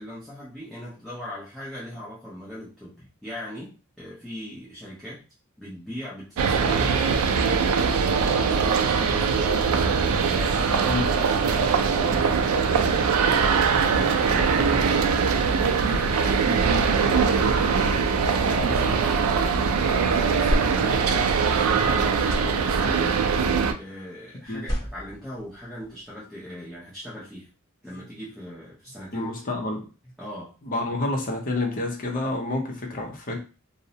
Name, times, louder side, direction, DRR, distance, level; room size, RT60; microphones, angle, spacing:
voice 1, 0.0-5.2 5.6-9.9 10.2-11.1 12.0-12.9 13.9-15.3 15.8-19.4 20.0-23.2 23.8-27.5 27.8-29.3 30.2-30.5, equal, ahead, -9 dB, 0.6 m, -39 dB
sound 1, 6.4-23.7, right 5 dB, 85° right, 0.3 m, -22 dB
sound 2, 24.4-26.1, equal, 20° left, 1.3 m, -33 dB
voice 2, 29.1-29.9 30.7-33.4, left 2 dB, 40° left, 2 dB, 0.6 m, -28 dB
2.6 x 2.0 x 2.7 m, 0.34 s
head